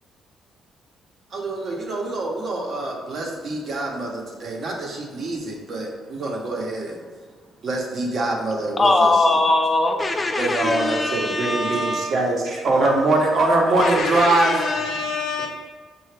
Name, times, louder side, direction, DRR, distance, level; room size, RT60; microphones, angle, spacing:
voice 1, 1.3-7.0 7.6-9.1 10.4-14.6, right 2 dB, 55° right, 0 dB, 0.8 m, -23 dB
voice 2, 8.8-12.1, left 2 dB, 25° left, 3 dB, 0.5 m, -20 dB
voice 3, 13.8-15.5, left 4 dB, 65° left, 1 dB, 0.7 m, -26 dB
5.6 x 2.3 x 3.3 m, 1.5 s
cardioid pair, 90°, 0 cm